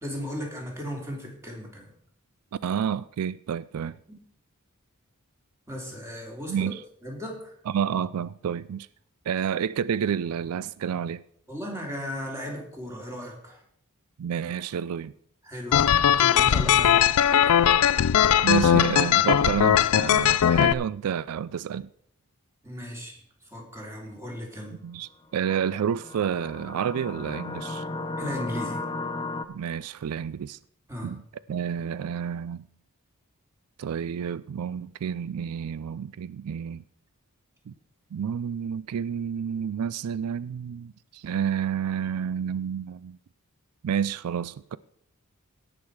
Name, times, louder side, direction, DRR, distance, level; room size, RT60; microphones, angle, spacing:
voice 1, 0.0-1.9 4.1-4.2 5.7-6.7 7.0-7.5 11.5-13.6 15.4-17.1 22.6-24.8 28.2-28.8 30.9-31.1, equal, 10° right, 2.9 m, -36 dB
voice 2, 2.6-4.0 6.5-6.8 7.7-8.9 9.3-11.2 14.2-15.1 18.4-21.9 24.8-27.8 29.5-30.6 31.0-31.2 31.5-32.7 33.8-36.8 37.7-37.8 38.1-43.2 43.8-44.8, right 8 dB, 80° right, 0.3 m, -29 dB
sound 1, 15.7-20.7, left 9 dB, 80° left, 0.4 m, -19 dB
sound 2, 25.4-29.5, left 2 dB, 20° left, 0.6 m, -35 dB
17.5 x 6.3 x 4.8 m
head